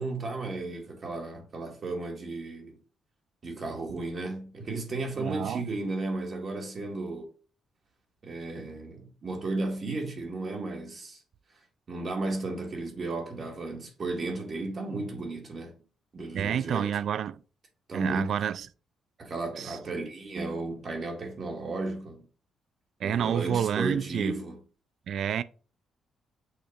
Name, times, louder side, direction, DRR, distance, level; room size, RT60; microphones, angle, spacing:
voice 1, 0.0-2.8 3.4-7.3 8.2-11.2 11.9-15.7 16.1-16.9 17.9-18.3 19.2-22.2 23.0-24.6, right 2 dB, 45° right, 1.8 m, -34 dB
voice 2, 5.2-5.6 16.3-17.4 17.9-18.7 19.6-19.8 23.0-24.4 25.1-25.4, right 9 dB, 65° right, 0.3 m, -29 dB
6.4 x 2.9 x 5.1 m
cardioid pair, 90°, 0 cm